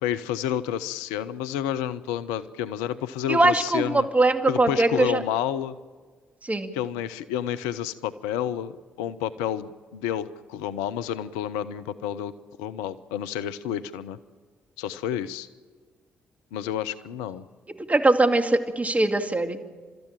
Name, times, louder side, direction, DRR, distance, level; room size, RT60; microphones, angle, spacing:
voice 1, 0.0-4.1 4.5-5.8 6.7-12.3 12.6-14.2 14.8-15.5 16.5-17.4, left 10 dB, 75° left, 14 dB, 0.6 m, -30 dB
voice 2, 3.3-5.2 6.5-6.7 17.9-19.6, right 2 dB, 25° right, 6 dB, 2.4 m, -21 dB
30.0 x 13.5 x 8.9 m, 1.5 s
figure-of-eight pair, 40°, 6 cm